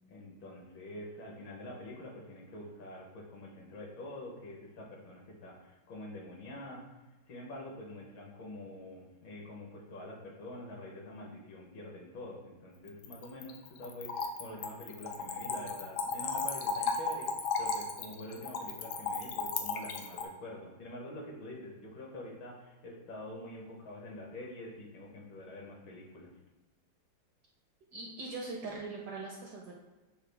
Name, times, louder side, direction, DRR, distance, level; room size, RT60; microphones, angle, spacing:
voice 1, 0.1-6.8 7.3-26.3, left 1 dB, 70° left, -1 dB, 1.5 m, -46 dB
Splash splatter / Trickle dribble, 12.9-20.3, left 4 dB, 85° left, 0.8 m, -35 dB
voice 2, 27.9-29.7, right 3 dB, 70° right, -2 dB, 1.0 m, -41 dB
6.5 x 2.3 x 3.2 m, 1.2 s
omnidirectional pair, 2.3 m